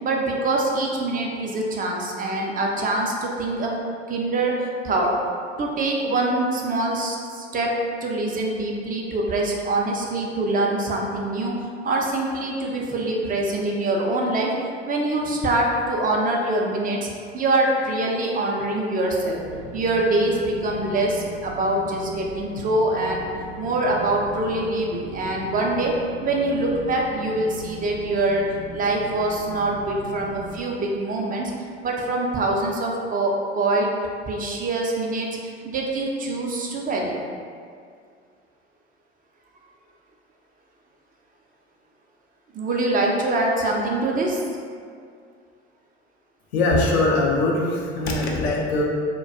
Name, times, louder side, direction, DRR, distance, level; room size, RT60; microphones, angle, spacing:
voice 1, 0.0-3.7 4.1-5.1 5.6-7.7 8.0-11.6 11.8-14.5 14.9-17.1 17.3-19.4 19.7-23.3 23.6-26.0 26.2-28.4 28.7-31.5 31.8-33.9 34.3-37.2 42.5-44.4, right 2 dB, 30° right, -1 dB, 0.4 m, -24 dB
sound 1, 19.3-30.6, right 1 dB, 80° right, 0.6 m, -39 dB
voice 2, 46.5-48.8, left 2 dB, 85° left, -2 dB, 0.5 m, -21 dB
2.2 x 2.2 x 2.5 m, 2.2 s
hypercardioid pair, 60°, 31 cm